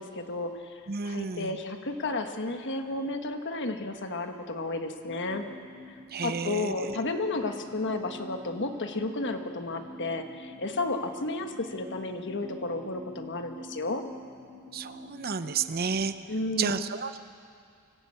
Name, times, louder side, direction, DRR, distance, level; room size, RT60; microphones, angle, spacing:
voice 1, 0.0-5.4 6.2-14.0 16.3-16.9, left 2 dB, 55° left, 6 dB, 1.4 m, -32 dB
voice 2, 0.9-1.5 6.1-7.0 14.7-16.1 16.6-17.2, right 5 dB, 45° right, 11 dB, 0.7 m, -31 dB
sound 1, 5.1-15.6, equal, 15° left, 3.8 m, -47 dB
24.0 x 14.5 x 8.7 m, 2.4 s
head